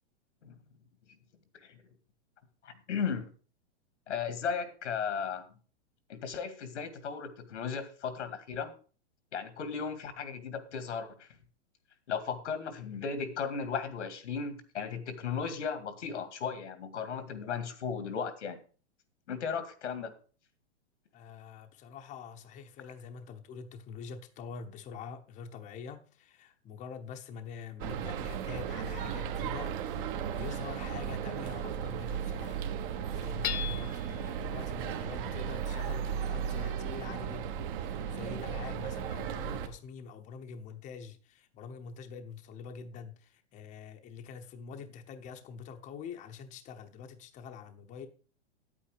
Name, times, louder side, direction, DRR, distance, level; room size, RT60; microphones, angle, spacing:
voice 1, 2.6-3.3 4.1-5.4 6.1-8.7 9.3-11.3 12.1-18.6 19.3-20.1, left 6 dB, 85° left, 2.1 m, -36 dB
voice 2, 21.1-48.1, left 6 dB, 20° left, 0.8 m, -45 dB
Porto airport arrival hall, 27.8-39.7, right 8 dB, 50° right, 1.4 m, -35 dB
Hammer / Chink clink, 33.4-34.2, left 12 dB, 65° left, 1.2 m, -36 dB
9.3 x 8.5 x 4.9 m
hypercardioid pair, 145°, 34 cm